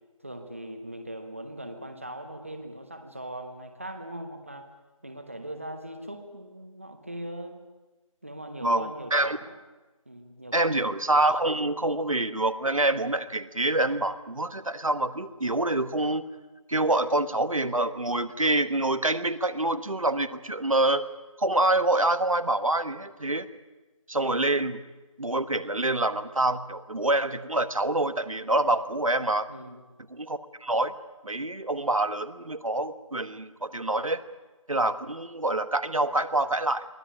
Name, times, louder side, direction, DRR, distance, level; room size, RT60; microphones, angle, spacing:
voice 1, 0.2-4.7 5.0-7.6 8.2-9.5 10.0-10.8 29.5-29.8, right 1 dB, 25° right, 6 dB, 1.3 m, -40 dB
voice 2, 8.6-9.4 10.5-16.2 16.7-21.0 21.4-23.5 24.1-24.8 25.2-29.5 30.1-30.9 31.2-34.2 34.7-36.9, right 2 dB, 75° right, 11 dB, 1.4 m, -26 dB
23.5 x 16.0 x 10.0 m, 1.2 s
figure-of-eight pair, 180°, 18 cm